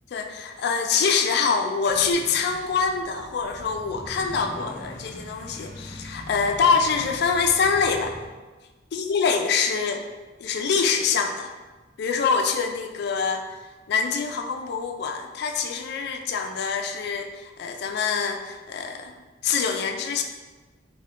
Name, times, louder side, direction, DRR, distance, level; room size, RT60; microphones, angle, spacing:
voice 1, 0.1-8.2 8.9-10.0 10.4-11.5 12.0-13.4 13.9-19.1 19.4-20.2, left 5 dB, 55° left, 5 dB, 0.3 m, -25 dB
sound 1, 1.8-8.3, equal, 35° left, 0.9 m, -42 dB
3.6 x 2.1 x 3.6 m, 1.3 s
head